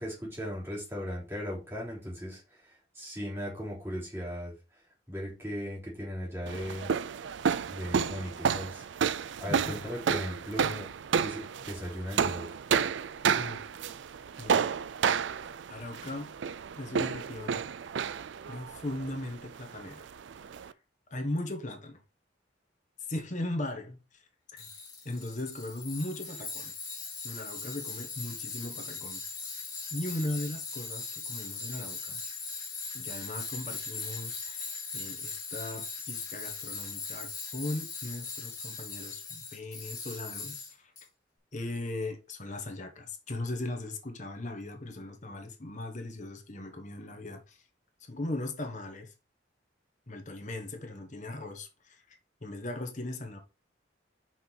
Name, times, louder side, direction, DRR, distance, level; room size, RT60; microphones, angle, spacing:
voice 1, 0.0-4.5 5.1-7.0 7.7-8.8 9.4-10.9 11.2-12.6, equal, 15° right, 3.9 m, -37 dB
sound 1, 6.5-20.7, right 7 dB, 75° right, 0.4 m, -31 dB
voice 2, 9.4-9.8 13.4-13.6 14.4-14.7 15.7-16.3 16.8-17.6 18.5-20.1 20.6-20.7 21.1-22.0 23.1-24.2 24.5-24.7 25.0-26.7 27.2-29.2 29.9-32.2 32.9-40.9 41.5-47.6 48.0-49.1 50.1-53.4, left 1 dB, 40° left, 1.3 m, -38 dB
Tools, 24.6-41.0, left 4 dB, 20° left, 3.3 m, -40 dB
5.9 x 5.2 x 4.6 m
head